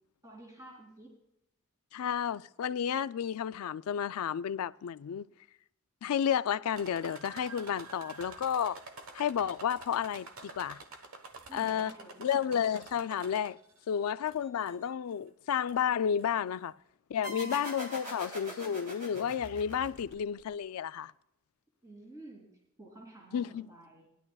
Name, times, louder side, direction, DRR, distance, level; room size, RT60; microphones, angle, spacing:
voice 1, 0.2-1.1 11.5-12.2 17.2-17.6 21.8-24.1, right 2 dB, 15° right, 2.9 m, -51 dB
voice 2, 1.9-5.2 6.0-8.8 9.1-10.8 11.5-11.9 12.2-13.6 13.9-16.7 17.1-21.1 23.3-23.7, left 8 dB, 85° left, 0.4 m, -31 dB
sound 1, 6.7-13.8 14.3-14.9 15.7-15.8 16.2-16.3, right 3 dB, 70° right, 1.2 m, -49 dB
sound 2, 17.2-20.5, equal, 35° right, 3.2 m, -43 dB
18.5 x 11.0 x 2.3 m
head